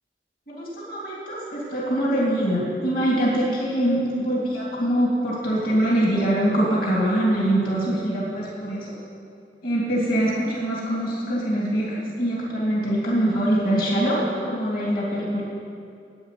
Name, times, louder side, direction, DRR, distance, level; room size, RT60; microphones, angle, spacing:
voice 1, 0.5-9.0 9.6-15.4, right 1 dB, 55° left, -5 dB, 3.3 m, -23 dB
11.5 x 9.2 x 9.6 m, 2.4 s
head